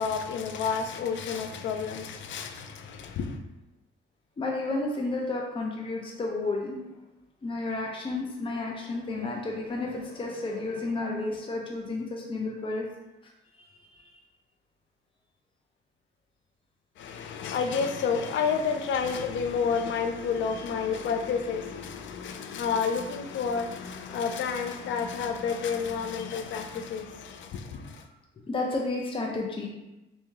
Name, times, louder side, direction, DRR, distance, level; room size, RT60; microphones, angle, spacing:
voice 1, 0.0-3.4 17.0-28.1, left 6 dB, 70° left, 0.5 m, -30 dB
voice 2, 4.4-6.8 7.4-12.9 13.6-13.7 13.9-14.1 28.5-29.7, left 2 dB, 25° left, 0.6 m, -31 dB
3.1 x 2.7 x 3.5 m
cardioid pair, 90°, 20 cm